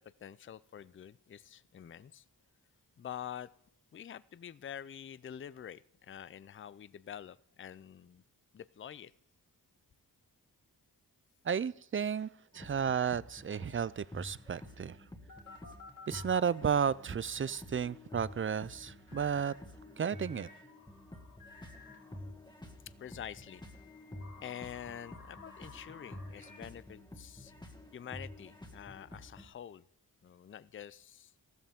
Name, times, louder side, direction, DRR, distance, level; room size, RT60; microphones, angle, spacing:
voice 1, 0.2-2.2 3.0-3.5 3.9-8.2 8.5-9.1 23.0-23.6 24.4-27.5 27.9-29.8 30.2-31.3, left 9 dB, 30° left, 18 dB, 0.4 m, -47 dB
voice 2, 11.5-12.3 12.5-15.0 16.1-19.5 20.0-20.5, right 7 dB, 30° right, 20 dB, 0.4 m, -33 dB
sound 1, 12.5-29.5, left 1 dB, 10° left, 1.7 m, -50 dB
sound 2, 15.3-16.5 19.1-19.6 20.1-22.2 23.1-26.6, left 3 dB, 55° left, 3.1 m, -55 dB
14.0 x 13.0 x 3.6 m, 0.79 s
cardioid pair, 55°, 40 cm